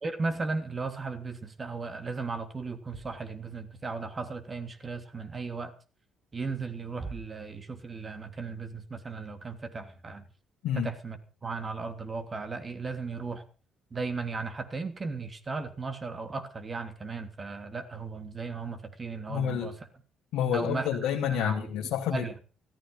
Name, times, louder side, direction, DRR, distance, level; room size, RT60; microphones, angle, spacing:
voice 1, 0.0-5.7 6.3-10.3 10.7-13.4 13.9-19.7 20.5-20.9 21.3-21.7 22.1-22.3, right 4 dB, 35° right, 7 dB, 3.0 m, -36 dB
voice 2, 19.3-19.7 20.3-22.4, left 9 dB, 70° left, 0 dB, 2.2 m, -29 dB
15.0 x 14.0 x 5.6 m, 0.36 s
hypercardioid pair, 55°, 0 cm